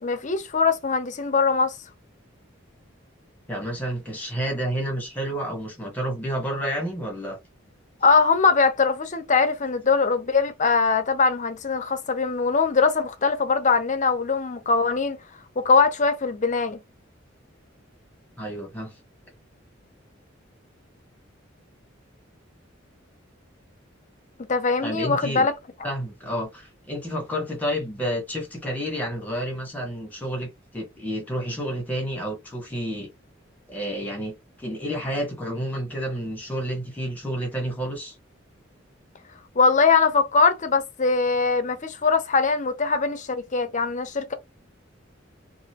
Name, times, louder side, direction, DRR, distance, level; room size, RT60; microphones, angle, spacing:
voice 1, 0.0-1.8 8.0-15.2 15.6-16.8 24.4-25.5 39.5-44.3, left 4 dB, 40° left, 0.6 m, -22 dB
voice 2, 3.5-7.4 18.4-18.9 24.8-25.5 25.8-33.1 33.7-38.2, equal, 10° left, 1.2 m, -30 dB
3.0 x 2.5 x 2.8 m
head